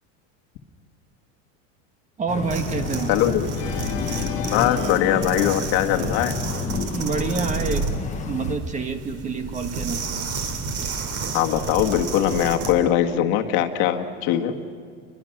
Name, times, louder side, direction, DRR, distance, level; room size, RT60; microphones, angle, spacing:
voice 1, 2.2-3.1 6.9-10.1, right 4 dB, 20° right, 7 dB, 1.4 m, -28 dB
sound 1, 2.3-8.6, left 5 dB, 20° left, 1.2 m, -31 dB
sound 2, 2.4-12.8, right 4 dB, 40° right, 3.0 m, -31 dB
voice 2, 3.1-3.5 4.5-6.4 11.3-14.5, left 11 dB, 55° left, 5 dB, 1.8 m, -21 dB
Organ, 3.5-6.7, left 9 dB, 75° left, 2.0 m, -33 dB
29.0 x 22.5 x 6.0 m, 2.1 s
supercardioid pair, 150°, 39 cm